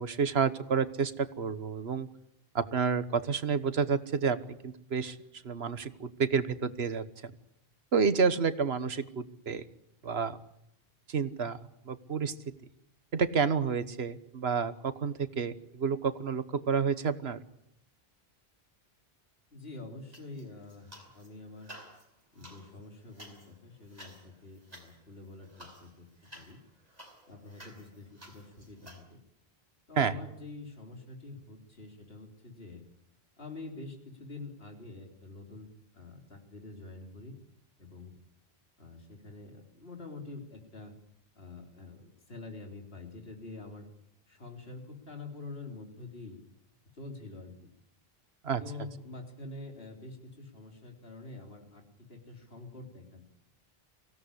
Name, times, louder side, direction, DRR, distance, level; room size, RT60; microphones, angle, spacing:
voice 1, 0.0-2.1 2.5-5.2 5.4-7.3 7.9-9.6 10.0-10.4 11.1-11.6 11.8-12.3 13.1-17.4 30.0-30.2 48.4-48.6, right 6 dB, 90° right, 13 dB, 1.5 m, -29 dB
voice 2, 19.5-21.7 22.3-26.6 27.3-29.2 29.9-32.8 33.4-37.4 37.8-38.2 38.8-41.0 41.4-43.9 44.3-46.4 46.9-47.5 48.6-53.3, left 3 dB, 75° left, 3 dB, 3.9 m, -46 dB
sound 1, 20.1-21.3 21.6-29.0, equal, 40° right, 5.0 m, -53 dB
24.5 x 17.0 x 9.9 m, 0.78 s
omnidirectional pair, 1.0 m